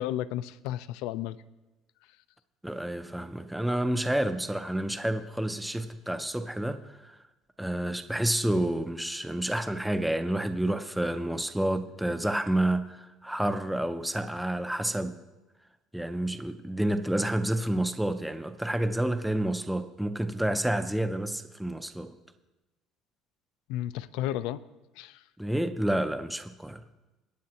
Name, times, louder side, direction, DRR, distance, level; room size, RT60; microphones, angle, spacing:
voice 1, 0.0-1.4 23.7-24.6 25.0-25.2, left 13 dB, 80° left, 0.4 m, -32 dB
voice 2, 2.6-7.2 7.6-15.2 15.9-22.1 25.4-26.8, right 1 dB, ahead, 0.4 m, -29 dB
21.0 x 9.5 x 2.8 m
cardioid pair, 160°, 0 cm